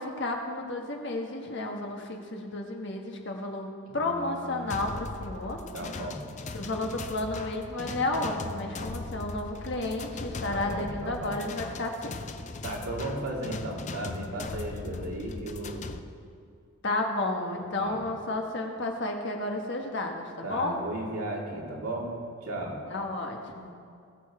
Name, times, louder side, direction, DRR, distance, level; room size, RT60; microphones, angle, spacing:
voice 1, 0.0-3.7 3.9-5.6 6.5-12.2 16.8-20.8 22.9-23.7, left 2 dB, 50° left, 2 dB, 1.4 m, -32 dB
voice 2, 3.8-4.7 5.7-6.2 10.5-11.4 12.6-16.0 17.8-18.1 20.4-22.1 22.4-22.8, right 1 dB, 75° right, -2 dB, 2.6 m, -35 dB
sound 1, 4.7-16.0, left 3 dB, 30° left, 0.5 m, -39 dB
20.5 x 7.3 x 4.8 m, 2.4 s
head